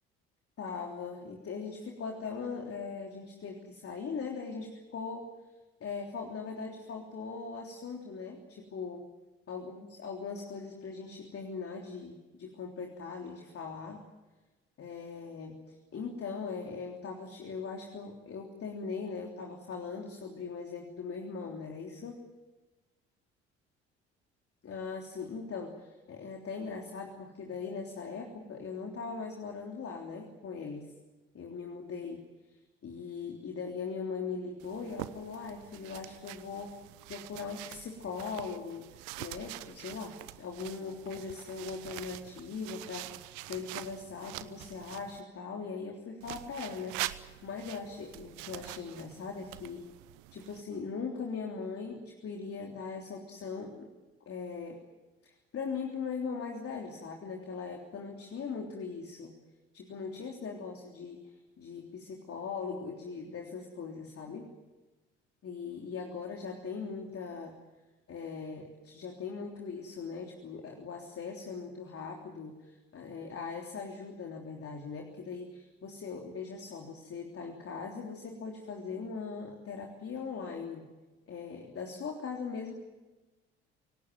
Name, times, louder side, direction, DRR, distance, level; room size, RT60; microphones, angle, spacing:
voice 1, 0.6-5.3 5.8-9.1 9.5-14.0 14.8-22.2 24.6-30.9 31.3-32.5 32.8-36.8 37.1-38.9 39.2-49.8 50.3-53.9 54.3-54.8 55.2-59.3 59.7-64.5 65.4-67.5 68.1-80.8 81.3-82.7, left 5 dB, 45° left, 2 dB, 3.4 m, -40 dB
sound 1, 34.6-45.2 46.2-50.6, right 18 dB, 70° right, 0.9 m, -45 dB
25.5 x 18.0 x 9.4 m, 1.1 s
hypercardioid pair, 55°, 32 cm